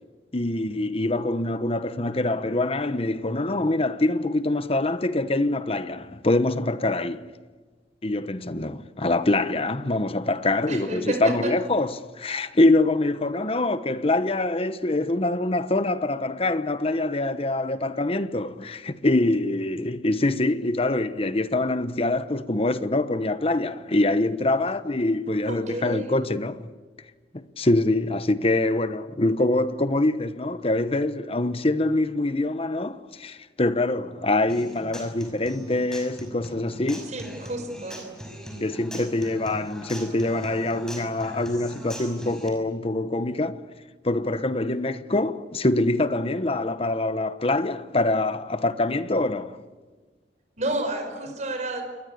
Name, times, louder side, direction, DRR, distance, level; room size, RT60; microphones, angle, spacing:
voice 1, 0.3-7.3 8.0-26.7 27.3-37.2 38.6-43.6 44.0-49.6, left 2 dB, 35° left, 1.1 m, -24 dB
voice 2, 10.7-11.5 25.5-26.1 37.1-38.1 50.6-51.8, right 1 dB, 45° right, 5.5 m, -30 dB
Human voice / Acoustic guitar, 34.5-42.5, equal, 5° left, 5.6 m, -40 dB
28.0 x 22.0 x 8.6 m
head